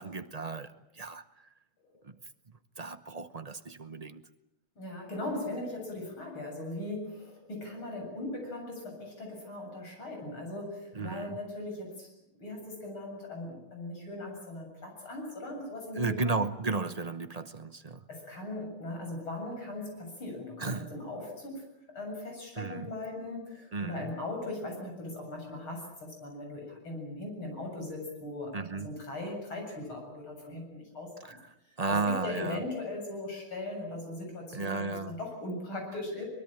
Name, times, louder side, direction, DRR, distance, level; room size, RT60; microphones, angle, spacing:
voice 1, 0.0-1.5 2.0-2.2 2.8-4.2 10.9-11.4 15.9-18.0 20.6-20.9 22.6-22.9 23.7-24.1 28.5-28.9 31.3-31.4 31.8-32.6 34.5-35.2, right 3 dB, 40° right, 10 dB, 0.5 m, -34 dB
voice 2, 4.8-12.1 12.4-16.4 18.1-31.4 31.7-36.2, left 2 dB, 85° left, 2 dB, 8.4 m, -39 dB
23.5 x 21.5 x 8.9 m, 0.85 s
omnidirectional pair, 2.2 m